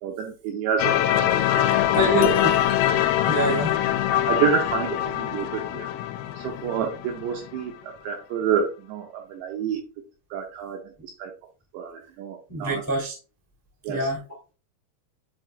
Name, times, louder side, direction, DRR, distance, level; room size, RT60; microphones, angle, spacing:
voice 1, 0.0-2.2 4.1-5.9 6.4-9.8 10.3-11.3 11.7-12.8 13.8-14.1, right 7 dB, 80° right, 2 dB, 2.6 m, -29 dB
sound 1, 0.8-7.6, left 12 dB, 85° left, 3.0 m, -23 dB
voice 2, 1.9-2.6 3.2-3.7 12.5-13.1 13.9-14.2, right 2 dB, 20° left, -2 dB, 0.5 m, -25 dB
10.5 x 3.9 x 2.3 m, 0.33 s
omnidirectional pair, 5.8 m